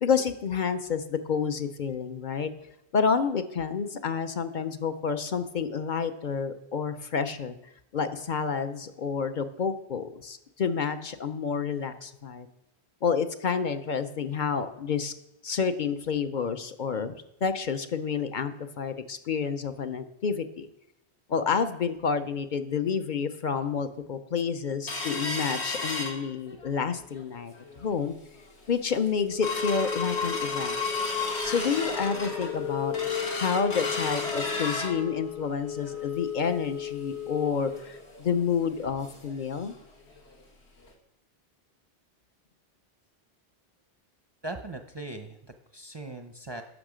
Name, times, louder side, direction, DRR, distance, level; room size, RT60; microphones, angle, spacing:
voice 1, 0.0-2.5 2.9-7.6 7.9-12.5 13.0-15.1 15.4-17.1 17.4-20.7 21.3-28.1 28.7-30.8 31.4-32.9 33.4-39.7, left 6 dB, 50° left, 9 dB, 0.7 m, -29 dB
sound 1, 24.9-26.7 27.1-27.2 27.6-27.9 28.4-28.5 28.9-39.4 39.7-39.8 40.2-40.4 40.9-41.0, left 4 dB, 75° left, 1.8 m, -32 dB
voice 2, 44.4-46.6, right 2 dB, 30° right, 5 dB, 0.5 m, -39 dB
12.0 x 6.4 x 5.0 m, 0.85 s
omnidirectional pair, 1.1 m